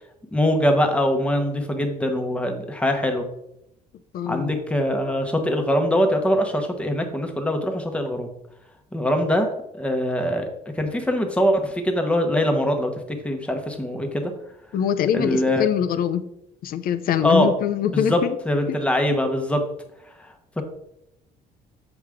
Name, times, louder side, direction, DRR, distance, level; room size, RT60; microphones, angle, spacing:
voice 1, 0.3-3.2 4.3-8.3 8.9-9.5 9.7-10.5 10.8-12.9 13.2-14.3 15.1-15.7 17.2-17.5 17.9-18.2 18.5-19.6 20.6-20.7, left 1 dB, 5° left, 3 dB, 1.1 m, -22 dB
voice 2, 4.1-4.5 14.7-16.3 16.6-18.4 18.7-19.1, left 9 dB, 60° left, 12 dB, 0.6 m, -24 dB
7.1 x 4.9 x 3.6 m, 0.82 s
cardioid pair, 110°, 17 cm